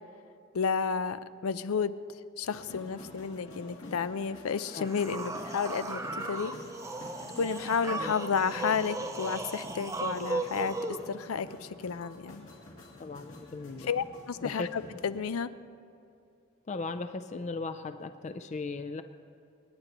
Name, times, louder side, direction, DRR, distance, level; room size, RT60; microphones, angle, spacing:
voice 1, 0.5-1.9 2.4-6.5 7.4-10.8 11.1-12.5 13.9-15.5, left 6 dB, 90° left, 14 dB, 0.5 m, -31 dB
sound 1, 2.4-15.2, left 1 dB, 65° left, 2.7 m, -48 dB
sound 2, 4.7-11.0, right 2 dB, 15° right, 0.6 m, -36 dB
voice 2, 13.0-13.9 14.4-14.7 16.7-19.0, left 3 dB, 35° left, 9 dB, 0.4 m, -37 dB
28.5 x 9.7 x 3.0 m, 2.5 s
head